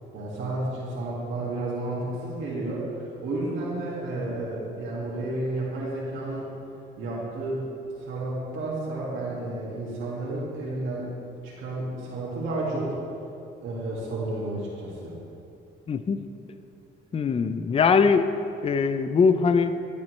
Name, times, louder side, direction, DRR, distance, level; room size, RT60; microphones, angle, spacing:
voice 1, 0.1-2.8 3.2-6.5 7.0-7.7 8.0-11.1 11.4-13.0 13.6-15.1, right 2 dB, 80° right, -6 dB, 2.0 m, -31 dB
voice 2, 15.9-16.2 17.1-18.3 18.6-19.7, left 5 dB, 30° left, 10 dB, 0.5 m, -21 dB
13.0 x 7.4 x 3.2 m, 2.7 s
cardioid pair, 90°, 20 cm